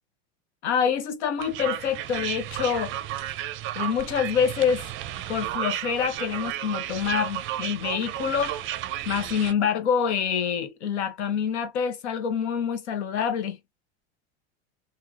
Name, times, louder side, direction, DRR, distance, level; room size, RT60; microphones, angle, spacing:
voice 1, 0.6-2.9 3.7-4.8 5.3-8.6 9.1-13.6, left 7 dB, 90° left, 1.1 m, -26 dB
sound 1, 1.4-9.5, right 13 dB, 40° right, 0.5 m, -33 dB
3.0 x 2.7 x 2.4 m
supercardioid pair, 110°, 33 cm